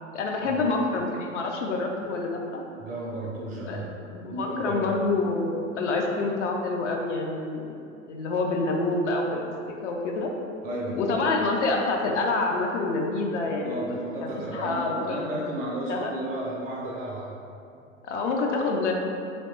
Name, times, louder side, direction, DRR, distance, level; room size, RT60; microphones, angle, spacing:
voice 1, 0.1-2.6 3.6-3.8 4.1-7.8 8.1-9.5 9.8-10.3 11.0-13.9 14.3-15.4 15.9-16.1 18.0-18.9, left 3 dB, 65° left, 1 dB, 0.6 m, -27 dB
voice 2, 2.8-3.9 4.3-4.9 10.6-11.0 13.6-17.3, right 1 dB, 20° right, -4 dB, 0.3 m, -33 dB
3.0 x 2.8 x 3.1 m, 2.5 s
figure-of-eight pair, 90°, 39 cm